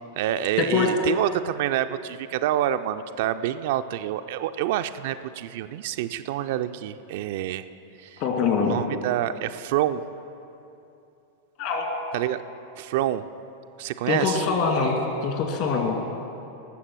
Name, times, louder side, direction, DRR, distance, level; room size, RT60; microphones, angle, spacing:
voice 1, 0.2-7.6 8.0-8.2 8.6-10.0 12.1-12.4 12.8-13.3 13.8-14.4, right 12 dB, 50° right, 9 dB, 0.4 m, -27 dB
voice 2, 8.2-8.8 11.6-11.9 14.1-15.0 15.2-15.9, left 5 dB, 45° left, 2 dB, 2.1 m, -23 dB
18.5 x 7.2 x 6.1 m, 2.8 s
figure-of-eight pair, 90°, 0 cm